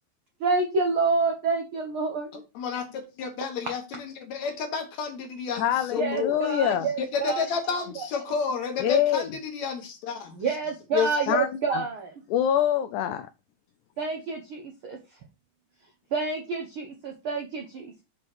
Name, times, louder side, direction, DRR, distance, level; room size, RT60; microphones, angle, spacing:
voice 1, 0.4-2.3 6.0-7.4 8.0-8.1 10.4-12.1 14.0-15.0 16.1-18.0, right 4 dB, 90° right, 1.1 m, -28 dB
voice 2, 2.3-6.4 7.0-10.6 10.9-11.4, left 6 dB, 65° left, 2.2 m, -31 dB
voice 3, 5.5-6.9 8.8-9.3 11.3-11.8 12.3-13.3, left 10 dB, 85° left, 1.7 m, -25 dB
6.6 x 3.6 x 5.9 m
omnidirectional pair, 3.9 m